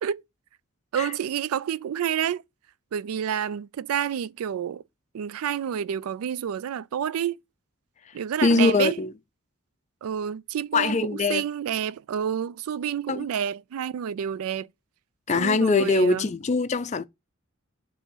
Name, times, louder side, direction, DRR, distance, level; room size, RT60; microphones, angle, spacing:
voice 1, 0.9-2.4 2.9-4.8 5.1-7.4 8.1-9.0 10.0-14.7 15.3-16.3, right 8 dB, 90° right, 0.3 m, -29 dB
voice 2, 8.4-9.1 10.7-11.4 13.1-13.3 15.3-17.0, left 4 dB, 35° left, 0.4 m, -22 dB
8.2 x 2.9 x 5.4 m
head